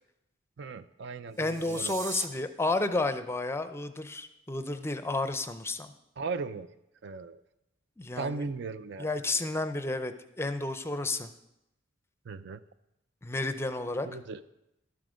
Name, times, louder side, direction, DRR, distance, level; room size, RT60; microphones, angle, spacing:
voice 1, 0.6-1.9 6.2-6.7 7.0-7.4 8.2-9.1 12.3-12.6 14.0-14.4, right 4 dB, 60° right, 13 dB, 0.5 m, -37 dB
sound 1, 1.3-2.3, right 5 dB, 40° right, 0.8 m, -41 dB
voice 2, 1.4-5.9 8.0-8.5 9.0-11.3 13.2-14.1, left 2 dB, 15° left, 10 dB, 0.5 m, -31 dB
11.5 x 7.7 x 5.0 m, 0.86 s
head